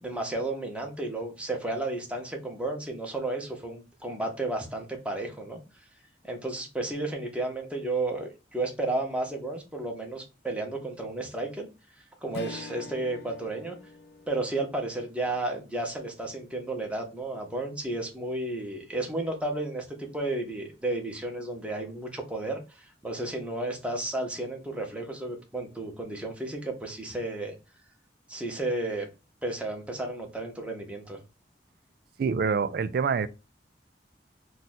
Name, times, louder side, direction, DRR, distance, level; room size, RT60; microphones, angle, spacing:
voice 1, 0.0-5.6 6.2-11.7 12.2-13.8 14.3-27.5 28.3-29.1 29.4-31.2, right 2 dB, 5° right, 0.8 m, -32 dB
Strum, 12.3-16.9, left 4 dB, 60° left, 0.4 m, -46 dB
voice 2, 32.2-33.3, right 5 dB, 55° right, 0.3 m, -26 dB
2.7 x 2.4 x 4.0 m
head